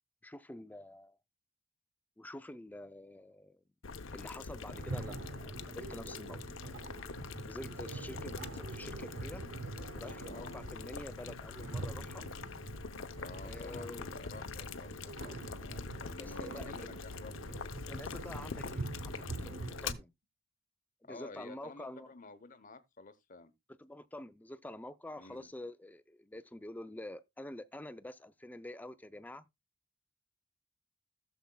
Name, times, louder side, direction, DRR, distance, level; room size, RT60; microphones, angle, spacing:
voice 1, 0.2-1.2 2.2-3.6 4.1-6.4 7.4-9.4 9.9-12.3 13.4-14.2 16.2-16.7 17.9-20.1 21.0-22.1 23.8-29.5, left 1 dB, 10° left, 0.4 m, -47 dB
Boiling, 3.8-19.9, left 4 dB, 85° left, 0.7 m, -44 dB
sound 1, 4.7-20.0, right 3 dB, 70° right, 0.6 m, -45 dB
voice 2, 10.3-10.6 13.1-17.7 21.0-23.5 25.2-25.5, left 3 dB, 40° left, 0.9 m, -51 dB
15.5 x 7.2 x 2.2 m
head